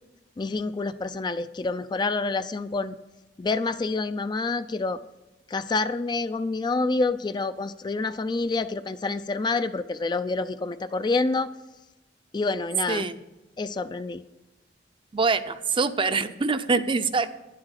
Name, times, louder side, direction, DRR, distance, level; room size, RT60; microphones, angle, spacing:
voice 1, 0.4-3.0 3.4-5.0 5.5-11.5 12.3-13.1 13.6-14.2, left 3 dB, 25° left, 12 dB, 0.3 m, -27 dB
voice 2, 15.1-17.3, right 4 dB, 30° right, 11 dB, 0.5 m, -24 dB
10.5 x 7.7 x 8.0 m, 1.0 s
head